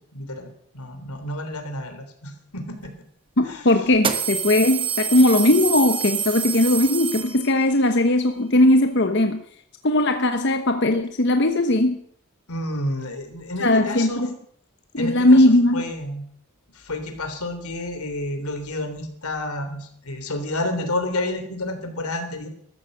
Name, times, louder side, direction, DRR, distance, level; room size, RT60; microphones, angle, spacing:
voice 1, 0.1-0.5 0.7-2.9 3.4-3.6 12.5-14.2 15.0-15.4 15.7-16.2 16.7-22.5, left 1 dB, 90° left, 7 dB, 3.5 m, -30 dB
sound 1, 2.8-2.9 3.9-7.7, right 7 dB, 25° right, 1.2 m, -27 dB
voice 2, 3.4-9.4 9.8-12.0 13.6-14.4 14.9-15.8, left 1 dB, 50° left, 6 dB, 1.1 m, -18 dB
14.5 x 13.5 x 6.6 m, 0.65 s
head